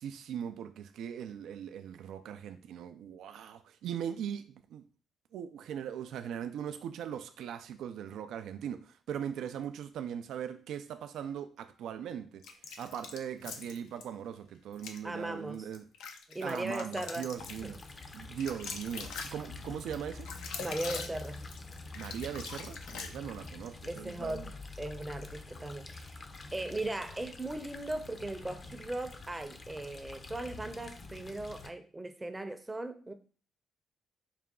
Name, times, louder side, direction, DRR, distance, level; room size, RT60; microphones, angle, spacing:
voice 1, 0.0-4.8 5.3-12.5 12.8-15.9 16.4-17.8 18.1-20.3 21.9-24.5, right 9 dB, 80° right, 0.3 m, -40 dB
sound 1, 12.4-14.1 14.7-15.0 15.5-23.5, left 5 dB, 85° left, 0.5 m, -43 dB
voice 2, 15.0-15.6 16.3-17.3 17.6-17.7 20.6-21.5 23.9-24.5 24.8-26.2 26.5-33.1, right 2 dB, 15° right, 0.6 m, -38 dB
sound 2, 17.4-31.7, left 3 dB, 35° left, 0.6 m, -47 dB
4.8 x 2.2 x 3.6 m
cardioid pair, 90°, 0 cm